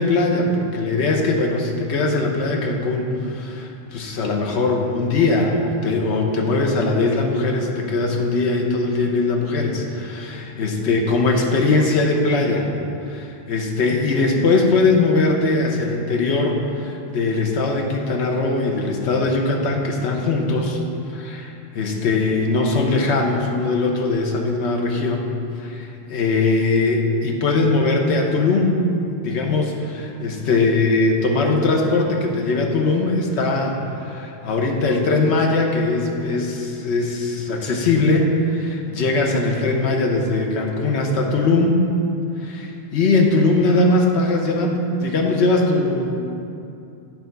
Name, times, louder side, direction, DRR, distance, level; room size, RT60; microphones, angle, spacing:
voice 1, 0.0-12.7 13.1-20.8 21.1-25.3 25.6-28.8 29.2-41.9 42.4-46.2, left 3 dB, 80° left, 2 dB, 1.1 m, -20 dB
8.9 x 3.4 x 5.2 m, 2.7 s
omnidirectional pair, 1.1 m